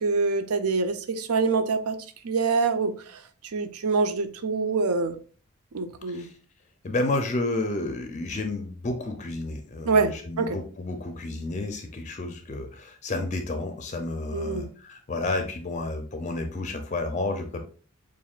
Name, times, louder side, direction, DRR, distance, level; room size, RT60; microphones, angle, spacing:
voice 1, 0.0-2.0 2.2-3.2 3.5-5.2 5.7-6.3 9.9-10.6 14.3-14.7, right 4 dB, 85° right, 0.6 m, -25 dB
voice 2, 6.8-17.6, left 2 dB, 30° left, 0.4 m, -31 dB
7.1 x 2.5 x 2.4 m
head